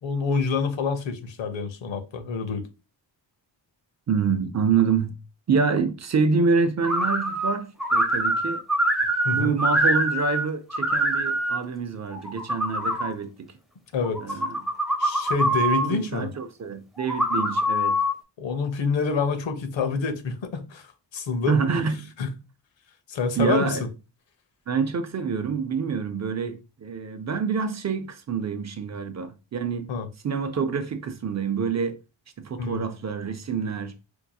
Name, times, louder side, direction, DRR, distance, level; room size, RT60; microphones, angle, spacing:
voice 1, 0.0-2.6 9.2-9.6 13.9-14.4 15.0-16.3 18.4-21.6 22.2-22.3 23.1-23.8 29.9-30.1 32.6-32.8, left 5 dB, 85° left, 0.8 m, -27 dB
voice 2, 4.1-5.2 5.5-8.6 9.3-13.5 14.2-14.5 15.7-18.0 21.5-22.1 23.4-23.8 24.7-29.9 30.2-32.0 32.4-33.9, right 5 dB, 40° right, 0.4 m, -26 dB
sound 1, 6.8-7.5 7.8-10.4 10.7-11.6 12.1-13.1 14.0-15.9 17.0-18.1, right 1 dB, ahead, 0.7 m, -24 dB
4.5 x 2.7 x 2.2 m
wide cardioid pair, 140°, 45 cm